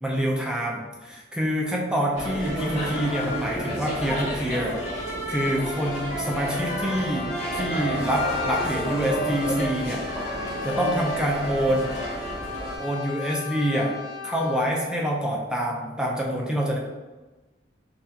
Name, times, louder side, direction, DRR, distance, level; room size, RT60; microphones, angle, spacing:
voice 1, 0.0-4.8 5.3-10.0 10.6-11.9 12.8-13.9 14.2-16.8, equal, 5° right, -2 dB, 0.5 m, -26 dB
sound 1, 2.1-12.8, equal, 35° left, 1.2 m, -30 dB
Brass instrument, 6.5-14.7, left 5 dB, 85° left, 1.1 m, -37 dB
5.8 x 2.4 x 2.8 m, 1.2 s
head